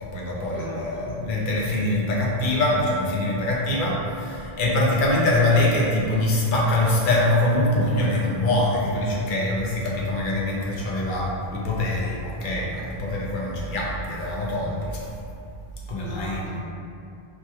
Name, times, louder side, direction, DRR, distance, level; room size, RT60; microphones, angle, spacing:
voice 1, 0.0-15.1 15.9-16.4, left 1 dB, 60° left, -4 dB, 0.7 m, -24 dB
voice 2, 0.5-1.1 16.0-16.6, right 1 dB, 75° right, -9 dB, 0.8 m, -37 dB
3.0 x 2.9 x 2.2 m, 2.6 s
omnidirectional pair, 1.1 m